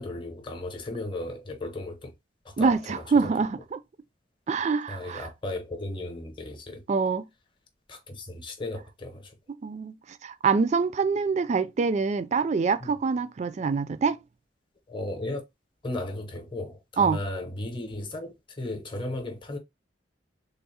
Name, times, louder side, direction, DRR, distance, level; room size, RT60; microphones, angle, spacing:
voice 1, 0.0-2.1 2.4-3.3 4.9-6.8 7.9-9.3 12.8-12.9 14.9-15.4 15.8-19.6, left 2 dB, 25° left, 0.8 m, -35 dB
voice 2, 2.6-3.8 4.5-5.3 6.9-7.3 9.5-14.2 17.0-17.2, right 5 dB, 35° right, 0.3 m, -25 dB
3.5 x 2.0 x 4.1 m
head